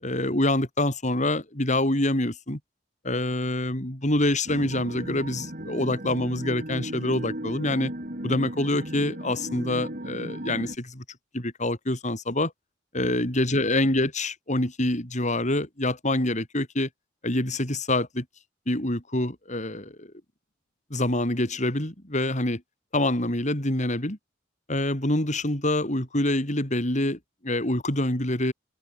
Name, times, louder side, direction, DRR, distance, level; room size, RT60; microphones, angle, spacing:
voice 1, 0.0-2.6 3.0-7.9 8.2-11.0 11.3-12.5 12.9-16.9 17.2-18.2 18.7-20.1 20.9-22.6 22.9-24.2 24.7-28.5, left 1 dB, 40° left, 4.8 m, -26 dB
sound 1, 4.5-10.8, right 1 dB, 45° right, 4.6 m, -36 dB
head